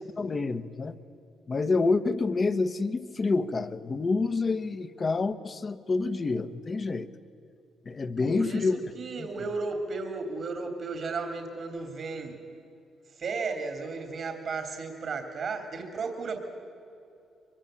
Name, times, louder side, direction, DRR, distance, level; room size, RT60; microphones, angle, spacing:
voice 1, 0.2-0.9 1.5-7.1 7.8-8.8 9.2-9.3, left 3 dB, 35° left, 12 dB, 1.3 m, -28 dB
voice 2, 8.2-8.7 8.9-12.3 13.1-16.4, right 4 dB, 55° right, 4 dB, 3.0 m, -34 dB
23.5 x 22.5 x 9.0 m, 2.7 s
cardioid pair, 90°, 0 cm